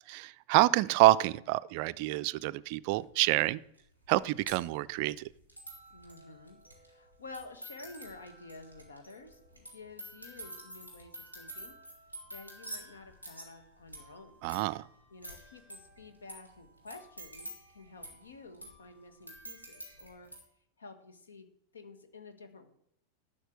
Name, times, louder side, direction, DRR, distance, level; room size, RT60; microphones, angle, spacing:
voice 1, 0.1-3.6 4.1-5.3 14.4-14.9, right 18 dB, 45° right, 16 dB, 0.4 m, -27 dB
sound 1, 2.9-3.0 3.8-3.9 4.0-20.4, right 1 dB, 90° left, 3.6 m, -49 dB
voice 2, 5.9-11.8 12.3-14.4 15.1-20.3 20.8-21.5 21.7-22.7, left 3 dB, 70° left, 8 dB, 1.6 m, -51 dB
12.5 x 6.4 x 7.7 m, 0.71 s
figure-of-eight pair, 90°, 0 cm